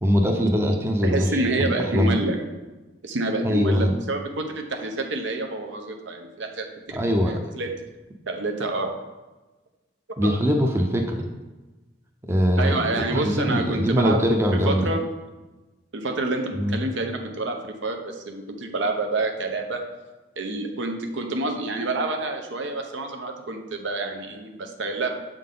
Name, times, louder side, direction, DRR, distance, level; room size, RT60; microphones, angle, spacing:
voice 1, 0.0-2.2 3.4-3.9 6.9-7.3 10.2-11.2 12.3-14.9 16.5-16.8, equal, 15° right, 2 dB, 0.5 m, -22 dB
voice 2, 1.0-2.4 3.0-7.7 8.3-8.9 10.2-10.3 12.6-14.2 14.5-15.0 15.9-19.8 20.4-25.1, right 2 dB, 80° right, 4 dB, 0.8 m, -28 dB
7.4 x 3.8 x 3.8 m, 1.1 s
head